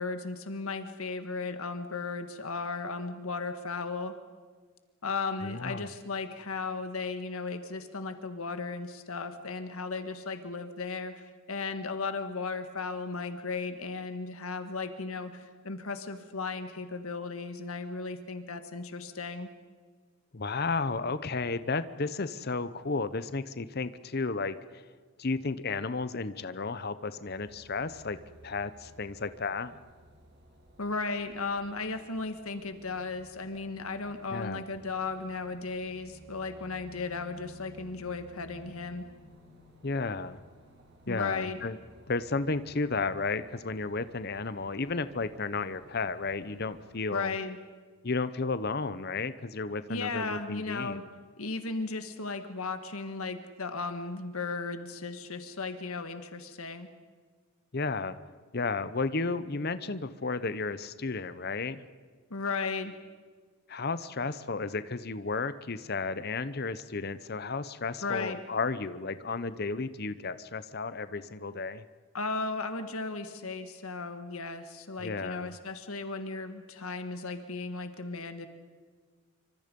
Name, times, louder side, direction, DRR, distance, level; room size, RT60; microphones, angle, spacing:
voice 1, 0.0-4.2 5.0-19.5 30.8-39.1 41.1-41.6 47.1-47.6 49.9-51.0 51.4-56.9 62.3-62.9 68.0-68.4 72.1-78.5, left 4 dB, 80° left, 8 dB, 1.6 m, -35 dB
voice 2, 5.4-5.9 20.3-24.8 25.2-28.2 28.4-29.8 34.3-34.6 39.8-40.4 41.1-41.8 42.1-47.3 48.0-51.1 57.7-58.2 58.5-61.9 63.7-71.8 75.0-75.5, left 3 dB, 45° left, 14 dB, 0.8 m, -33 dB
sound 1, 27.2-47.0, equal, 50° right, 4.0 m, -56 dB
26.5 x 25.0 x 5.4 m, 1.5 s
head